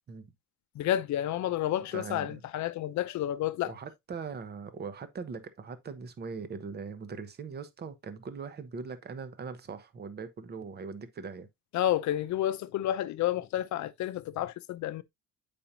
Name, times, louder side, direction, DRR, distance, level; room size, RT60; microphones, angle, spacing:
voice 1, 0.8-3.7 11.7-15.0, left 12 dB, 60° left, 0.7 m, -30 dB
voice 2, 1.9-2.4 3.7-11.5, right 5 dB, 30° right, 0.9 m, -40 dB
8.6 x 5.2 x 2.7 m
cardioid pair, 155°, 33 cm